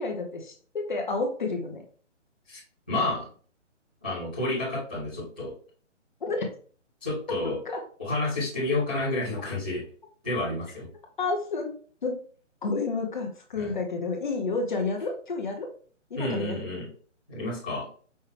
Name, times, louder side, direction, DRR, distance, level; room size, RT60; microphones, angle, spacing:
voice 1, 0.0-1.8 6.2-6.5 7.7-7.8 11.2-11.8 12.0-12.2 12.6-15.7 16.1-16.6, left 3 dB, 40° left, 3 dB, 0.8 m, -30 dB
voice 2, 2.9-3.3 4.0-5.5 7.0-7.6 8.0-9.8 10.2-10.9 13.6-13.7 16.2-16.9 17.3-17.8, left 2 dB, 10° left, -15 dB, 0.6 m, -30 dB
5.4 x 2.3 x 3.3 m, 0.44 s
hypercardioid pair, 170°, 37 cm